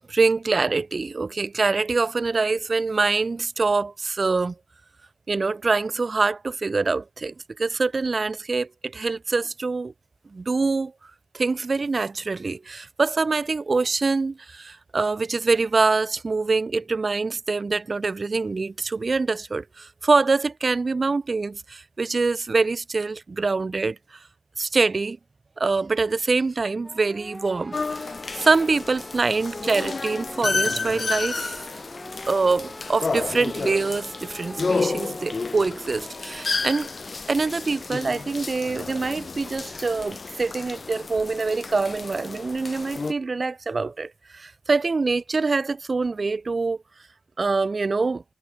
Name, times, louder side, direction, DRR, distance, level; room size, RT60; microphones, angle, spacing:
voice 1, 0.1-4.5 5.3-9.9 10.3-10.9 11.3-24.0 24.6-25.2 25.6-28.1 28.3-31.6 32.3-36.9 37.3-46.8 47.4-48.2, right 3 dB, 30° right, 0.4 m, -24 dB
sound 1, 26.8-36.6, equal, ahead, 3.8 m, -43 dB
sound 2, 27.7-43.1, left 4 dB, 30° left, 0.8 m, -31 dB
wide cardioid pair, 115°, 0 cm